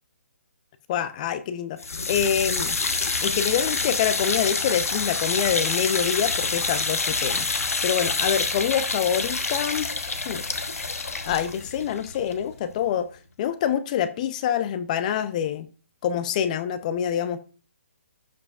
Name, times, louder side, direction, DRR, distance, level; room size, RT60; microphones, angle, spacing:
voice 1, 0.9-1.8 2.1-2.8 3.2-9.9 10.3-10.4 11.3-13.1 13.4-15.7 16.0-17.4, left 9 dB, 30° left, 13 dB, 0.5 m, -26 dB
sound 1, 1.8-12.9, left 4 dB, 85° left, 1.1 m, -27 dB
11.5 x 4.8 x 2.4 m, 0.36 s
hypercardioid pair, 150°, 8 cm